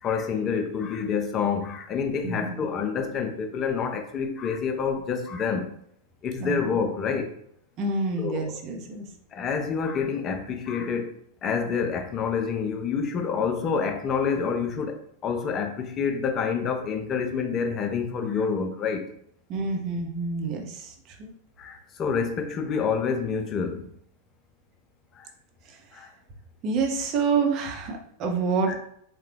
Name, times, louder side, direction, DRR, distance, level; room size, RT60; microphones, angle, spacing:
voice 1, 0.0-5.7 6.2-7.3 8.2-8.5 9.3-19.0 21.6-23.9 25.1-25.3 25.9-26.1 28.7-28.8, left 6 dB, 30° left, 4 dB, 0.5 m, -28 dB
voice 2, 2.2-2.6 6.4-6.6 7.8-9.1 19.5-21.3 25.6-26.1 26.6-28.8, right 4 dB, 35° right, 3 dB, 0.7 m, -28 dB
3.8 x 2.2 x 3.2 m, 0.70 s
figure-of-eight pair, 90°, 0 cm